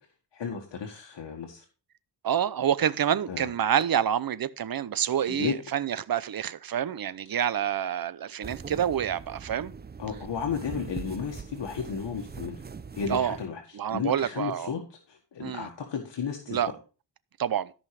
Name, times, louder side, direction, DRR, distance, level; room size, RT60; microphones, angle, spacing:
voice 1, 0.3-1.6 3.3-3.5 5.3-5.6 10.0-12.6 12.9-16.6, left 6 dB, 80° left, 1.7 m, -33 dB
voice 2, 2.2-9.7 13.1-13.4 13.7-14.7 15.4-15.7 16.5-16.7 17.4-17.7, right 9 dB, 55° right, 0.7 m, -27 dB
sound 1, 8.4-13.5, right 5 dB, 25° right, 0.5 m, -41 dB
13.5 x 5.6 x 4.8 m
wide cardioid pair, 85°, 43 cm